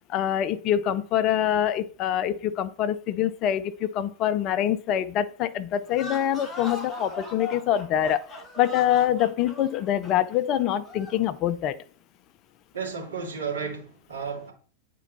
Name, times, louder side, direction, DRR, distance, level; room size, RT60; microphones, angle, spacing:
voice 1, 0.1-8.2 8.6-11.8, left 11 dB, 35° left, 0.5 m, -25 dB
sound 1, 5.9-11.3, left 2 dB, 10° left, 2.7 m, -40 dB
voice 2, 12.7-14.5, right 5 dB, 65° right, 2.6 m, -33 dB
9.0 x 4.6 x 4.2 m
figure-of-eight pair, 90°, 0 cm